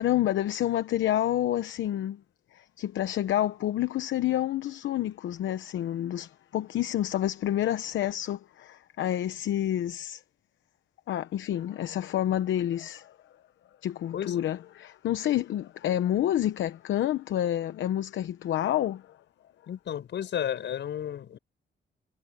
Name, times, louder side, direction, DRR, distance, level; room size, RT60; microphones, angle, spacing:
voice 1, 0.0-2.2 2.5-10.2 11.1-13.2 13.8-19.1, left 12 dB, 90° left, 0.9 m, -28 dB
voice 2, 19.7-21.4, left 9 dB, 70° left, 5.5 m, -32 dB
cardioid pair, 125°, 19 cm